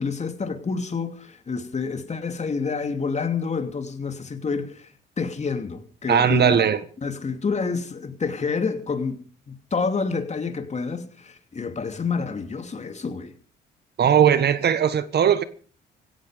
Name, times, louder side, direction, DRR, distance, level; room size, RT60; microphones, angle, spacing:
voice 1, 0.0-4.9 5.2-6.7 7.0-9.2 9.5-13.3, left 4 dB, 35° left, 2.9 m, -28 dB
voice 2, 6.1-6.8 14.0-15.4, right 8 dB, 55° right, 1.4 m, -19 dB
17.0 x 15.0 x 5.2 m
cardioid pair, 90°, 20 cm